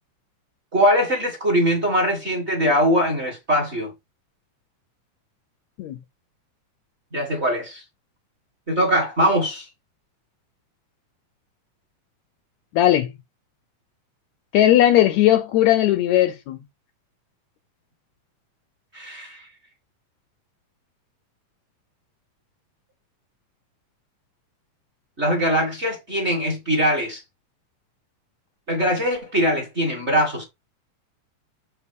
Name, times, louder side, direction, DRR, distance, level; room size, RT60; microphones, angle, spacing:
voice 1, 0.7-3.9 7.1-7.8 8.7-9.7 18.9-19.5 25.2-27.2 28.7-30.4, equal, 30° right, 1.4 m, -21 dB
voice 2, 12.8-13.1 14.5-16.6, left 13 dB, 75° left, 1.7 m, -17 dB
8.2 x 3.0 x 5.2 m
omnidirectional pair, 3.6 m